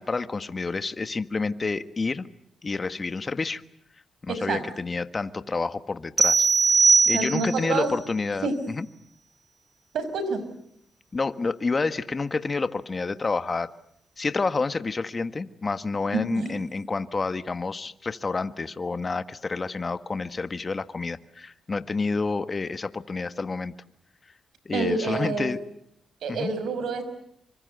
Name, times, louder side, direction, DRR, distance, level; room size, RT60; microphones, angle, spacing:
voice 1, 0.0-2.3 2.6-3.6 4.2-6.5 7.1-8.9 11.1-13.7 14.2-23.7 24.6-25.6 26.3-26.5, left 4 dB, 40° left, 11 dB, 1.5 m, -29 dB
voice 2, 4.3-4.6 7.1-7.9 8.4-8.5 9.9-10.5 16.1-16.5 24.7-25.6 26.2-27.0, right 4 dB, 80° right, 11 dB, 5.5 m, -28 dB
sound 1, 6.2-7.7, right 4 dB, 35° right, 2.0 m, -19 dB
27.5 x 25.0 x 8.0 m, 0.74 s
cardioid pair, 65°, 0 cm